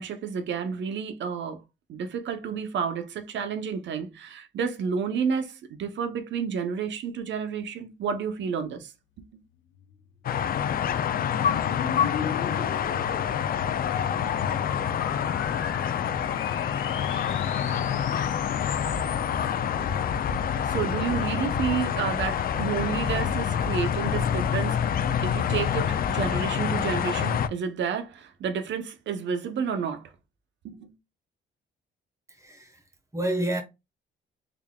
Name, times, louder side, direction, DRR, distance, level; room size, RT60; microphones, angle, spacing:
voice 1, 0.0-1.6 1.9-8.9 9.3-9.4 20.6-24.8 25.2-30.1 30.6-30.9, right 6 dB, 65° right, 0.9 m, -30 dB
sound 1, 9.7-19.5, left 8 dB, 80° left, 0.8 m, -38 dB
sound 2, 10.2-27.5, left 8 dB, 50° left, 0.4 m, -27 dB
voice 2, 32.3-32.8 33.1-33.6, right 1 dB, 15° right, 1.2 m, -29 dB
3.9 x 3.5 x 2.3 m
cardioid pair, 90°, 20 cm